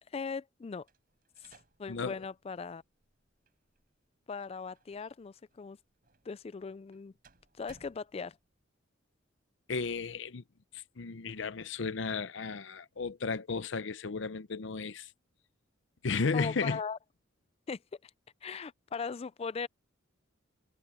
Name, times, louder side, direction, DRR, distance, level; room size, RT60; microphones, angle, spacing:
voice 1, 0.1-0.9 1.4-2.8 4.3-5.8 6.3-7.1 7.6-8.4 16.3-17.0 17.7-18.1 18.4-19.7, left 5 dB, 30° left, 0.3 m, -39 dB
sound 1, 0.8-8.6, right 3 dB, 50° right, 4.2 m, -65 dB
voice 2, 9.7-10.4 10.7-15.1 16.0-16.8, left 4 dB, 70° left, 0.7 m, -34 dB
head